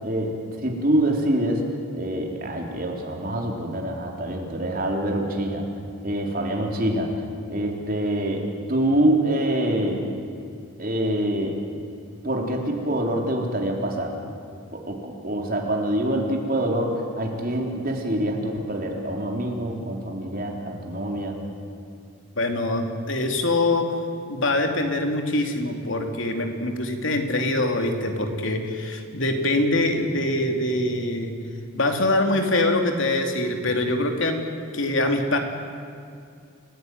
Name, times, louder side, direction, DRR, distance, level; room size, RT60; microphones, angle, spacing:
voice 1, 0.0-0.4 0.6-1.7 1.9-5.6 6.0-7.1 7.5-10.1 10.8-11.6 12.2-14.1 14.7-21.4, right 1 dB, 45° right, 1 dB, 3.8 m, -25 dB
voice 2, 22.4-24.0 24.3-31.3 31.7-34.5 34.7-35.4, left 2 dB, 70° left, 4 dB, 2.9 m, -24 dB
29.5 x 17.0 x 9.4 m, 2.4 s
head